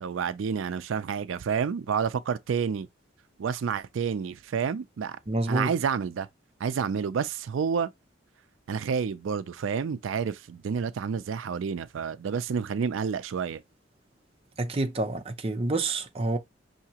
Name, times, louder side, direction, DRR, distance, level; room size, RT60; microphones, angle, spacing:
voice 1, 0.0-2.9 3.4-5.2 5.5-6.3 6.6-7.9 8.7-13.6, right 6 dB, 85° right, 0.4 m, -29 dB
voice 2, 5.3-5.7 14.6-16.4, right 2 dB, 30° right, 0.6 m, -28 dB
5.7 x 2.7 x 2.8 m
head